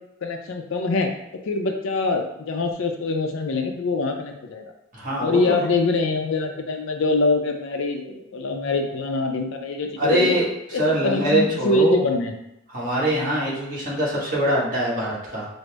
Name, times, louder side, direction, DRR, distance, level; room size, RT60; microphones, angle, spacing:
voice 1, 0.2-1.1 1.5-4.6 5.2-10.4 10.7-12.3, left 3 dB, 65° left, 4 dB, 0.5 m, -24 dB
voice 2, 4.9-5.7 10.0-12.0 12.7-15.5, right 1 dB, 40° right, -6 dB, 1.3 m, -23 dB
5.1 x 2.0 x 3.3 m, 0.85 s
head